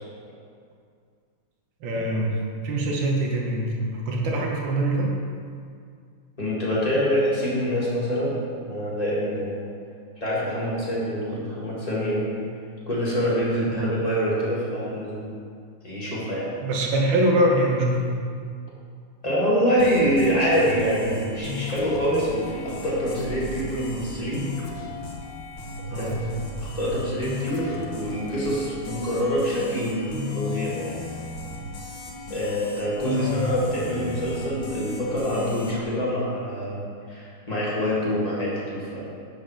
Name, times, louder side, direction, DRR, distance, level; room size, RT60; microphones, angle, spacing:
voice 1, 1.8-2.3 2.6-5.1 13.7-13.9 16.6-18.2 25.9-26.2 33.1-33.4, right 1 dB, 70° right, -1 dB, 1.7 m, -24 dB
voice 2, 6.4-8.4 8.7-9.6 10.2-12.2 12.9-15.3 15.8-16.5 19.2-24.4 25.9-26.1 26.6-31.0 32.3-39.1, equal, 20° left, -8 dB, 1.6 m, -25 dB
sound 1, 19.8-35.8, left 3 dB, 80° left, 2.1 m, -35 dB
7.0 x 4.0 x 6.3 m, 2.2 s
omnidirectional pair, 2.3 m